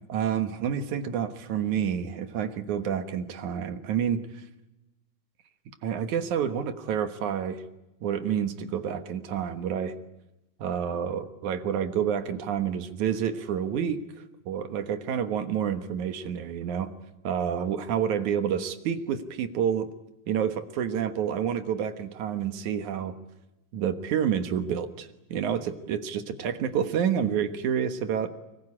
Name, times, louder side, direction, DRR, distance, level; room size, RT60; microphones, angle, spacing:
voice 1, 0.1-4.4 5.8-7.6 8.0-10.0 10.6-14.0 14.5-16.9 17.2-19.9 20.3-23.1 23.7-28.3, right 8 dB, 65° right, 9 dB, 2.6 m, -29 dB
24.5 x 21.5 x 9.9 m, 0.95 s
omnidirectional pair, 3.9 m